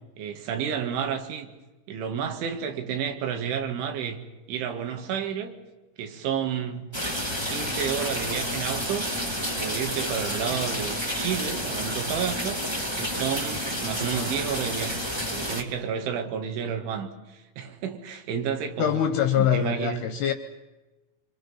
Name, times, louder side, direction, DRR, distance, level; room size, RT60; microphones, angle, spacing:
voice 1, 0.2-1.5 1.9-4.2 4.5-5.6 6.0-6.9 7.5-9.1 9.6-12.6 13.0-14.9 15.3-19.0 19.4-20.1, right 8 dB, 85° right, 4.4 m, -31 dB
sound 1, 6.9-15.6, equal, 20° right, 0.7 m, -30 dB
voice 2, 18.8-20.3, left 10 dB, 70° left, 2.9 m, -24 dB
26.5 x 26.5 x 5.7 m
omnidirectional pair, 5.3 m